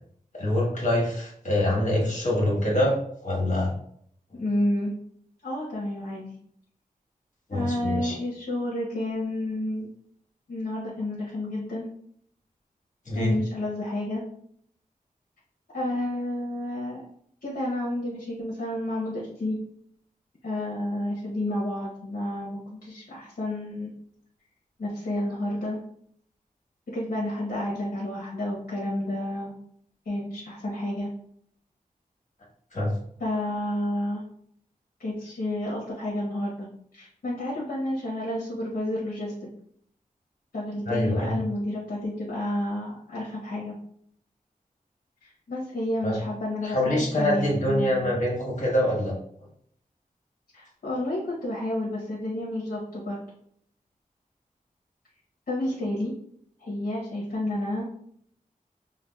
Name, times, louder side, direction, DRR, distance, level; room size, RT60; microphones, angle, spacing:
voice 1, 0.3-2.9 3.2-3.7 7.5-8.2 13.0-13.3 32.7-32.9 40.8-41.3 46.0-46.2 46.6-49.1, left 1 dB, 55° left, -4 dB, 1.3 m, -25 dB
voice 2, 4.4-4.9 5.4-6.3 7.5-9.9 10.5-11.9 13.1-14.2 15.7-17.0 17.4-19.6 20.4-23.9 24.8-25.8 26.9-29.5 30.1-31.1 33.2-34.2 35.0-39.3 40.5-43.8 45.2-48.1 50.5-53.2 55.5-56.1 56.6-57.8, left 1 dB, 75° left, -5 dB, 0.8 m, -30 dB
4.9 x 2.2 x 2.3 m, 0.65 s
wide cardioid pair, 75°, 15 cm